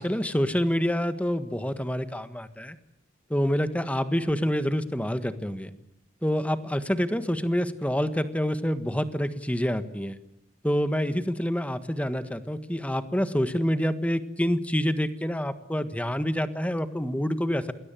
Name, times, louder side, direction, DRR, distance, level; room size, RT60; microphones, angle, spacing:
voice 1, 0.0-2.8 3.3-5.7 6.2-10.2 10.6-17.7, equal, 5° left, 10 dB, 1.5 m, -27 dB
29.0 x 20.5 x 9.1 m, 0.76 s
head